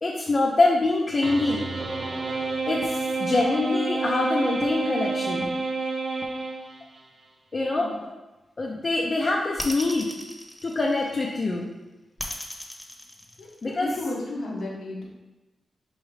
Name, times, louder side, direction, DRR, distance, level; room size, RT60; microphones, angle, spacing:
voice 1, 0.0-1.6 2.7-5.5 7.5-8.1 8.6-10.1 10.6-11.7 13.6-13.9, left 2 dB, 50° left, -2 dB, 0.5 m, -24 dB
sound 1, 1.2-7.0, right 3 dB, 60° right, 0.5 m, -29 dB
sound 2, 9.6-11.3 12.2-13.9, left 1 dB, 20° left, 1.0 m, -36 dB
voice 2, 13.8-15.1, left 2 dB, 85° left, -3 dB, 1.0 m, -32 dB
4.8 x 3.1 x 3.2 m, 1.1 s
cardioid pair, 55°, 0 cm